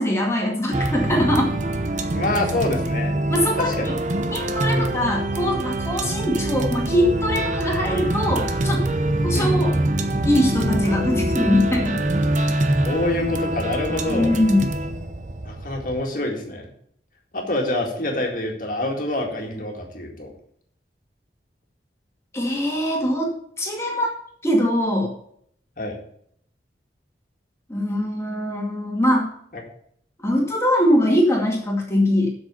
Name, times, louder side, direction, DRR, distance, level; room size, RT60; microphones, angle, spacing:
voice 1, 0.0-1.5 3.3-4.0 4.3-8.8 9.2-9.7 10.2-12.0 14.1-14.7 22.3-24.1 24.4-25.1 27.7-29.3 30.2-32.3, left 1 dB, 15° left, -1 dB, 2.2 m, -22 dB
sound 1, 0.7-16.0, right 1 dB, 45° right, 0.8 m, -24 dB
voice 2, 2.1-3.2 3.6-3.9 4.7-4.9 9.3-9.5 12.8-14.3 15.4-16.7 17.3-20.3 25.8-26.0 29.5-29.6, left 1 dB, 50° left, 1 dB, 2.1 m, -26 dB
7.9 x 6.3 x 7.0 m, 0.66 s
head